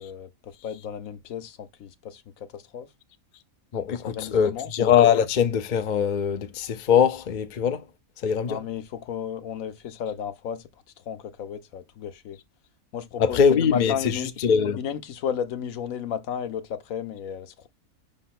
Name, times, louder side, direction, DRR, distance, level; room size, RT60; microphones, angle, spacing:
voice 1, 0.0-2.9 3.9-4.7 8.5-10.7 11.0-12.4 12.9-14.3 14.8-17.7, left 8 dB, 75° left, 1.1 m, -33 dB
voice 2, 3.7-7.8 8.2-8.6 13.2-14.8, left 7 dB, 50° left, 0.5 m, -22 dB
5.4 x 3.9 x 5.7 m
omnidirectional pair, 1.5 m